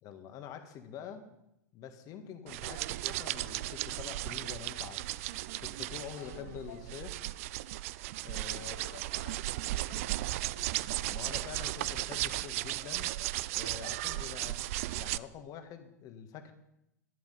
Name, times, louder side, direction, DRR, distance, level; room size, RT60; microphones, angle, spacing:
voice 1, 0.0-1.2 1.7-5.0 5.6-7.1 8.2-8.8 11.1-13.1 13.5-14.6 14.9-16.5, left 8 dB, 35° left, 7 dB, 1.7 m, -46 dB
sound 1, 2.5-15.2, right 17 dB, 50° right, 0.4 m, -36 dB
voice 2, 6.2-7.1 8.5-12.0, left 7 dB, 60° left, 5 dB, 1.1 m, -53 dB
11.5 x 11.5 x 5.6 m, 0.83 s
figure-of-eight pair, 95°, 10 cm